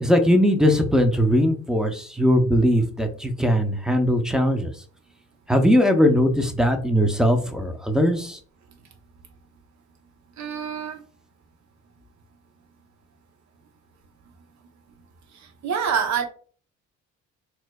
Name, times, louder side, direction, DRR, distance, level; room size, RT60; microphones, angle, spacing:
voice 1, 0.0-4.7 5.5-8.4, equal, ahead, 5 dB, 0.5 m, -20 dB
voice 2, 10.4-11.0 15.6-16.3, right 7 dB, 65° right, 4 dB, 0.8 m, -26 dB
4.2 x 2.6 x 2.2 m, 0.42 s
cardioid pair, 90°, 30 cm